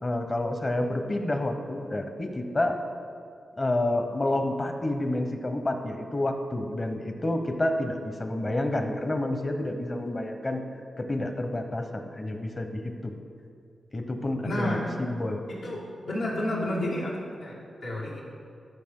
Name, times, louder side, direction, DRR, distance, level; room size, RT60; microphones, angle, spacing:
voice 1, 0.0-2.8 3.6-10.6 11.0-13.1 13.9-15.4, left 1 dB, 35° left, 6 dB, 1.0 m, -29 dB
voice 2, 14.4-14.8 15.5-18.2, left 1 dB, 85° left, -6 dB, 2.3 m, -31 dB
13.5 x 5.8 x 3.8 m, 2.4 s
cardioid pair, 65°, 0 cm